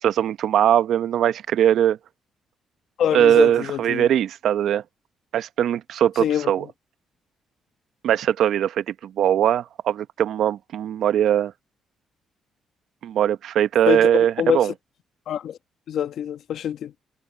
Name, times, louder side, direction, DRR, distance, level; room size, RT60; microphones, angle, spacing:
voice 1, 0.0-2.0 3.1-4.8 5.3-6.6 8.0-11.5 13.0-14.7, right 10 dB, 75° right, 0.8 m, -20 dB
voice 2, 3.0-4.1 6.2-6.7 13.9-14.1 14.4-14.7 15.3-15.6 15.9-16.9, left 9 dB, 70° left, 1.3 m, -25 dB
cardioid pair, 90°, 0 cm